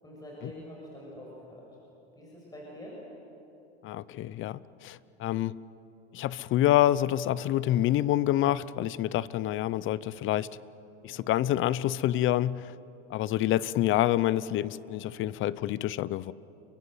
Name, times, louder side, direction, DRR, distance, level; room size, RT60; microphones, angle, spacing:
voice 1, 0.0-1.6 2.2-3.0, equal, 10° left, -4 dB, 6.9 m, -45 dB
voice 2, 3.8-5.6 6.1-10.5 11.0-12.7 13.1-16.3, left 13 dB, 35° left, 19 dB, 0.7 m, -27 dB
30.0 x 23.0 x 7.9 m, 2.9 s
supercardioid pair, 120°, 34 cm